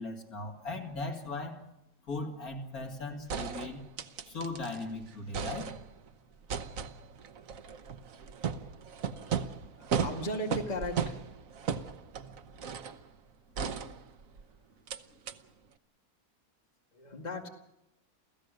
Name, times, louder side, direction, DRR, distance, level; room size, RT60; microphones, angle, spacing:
voice 1, 0.0-1.6 2.1-3.9 4.3-5.7, left 2 dB, 65° left, 3 dB, 3.0 m, -38 dB
sound 1, 2.8-2.9 3.3-4.8 5.1-6.1 6.5-13.0 13.6-14.4 14.9-15.0 15.3-15.4, right 7 dB, 60° right, 1.3 m, -36 dB
voice 2, 9.8-11.2 16.9-17.5, left 1 dB, 25° left, 2 dB, 2.3 m, -36 dB
29.0 x 16.0 x 6.5 m, 0.88 s
omnidirectional pair, 1.7 m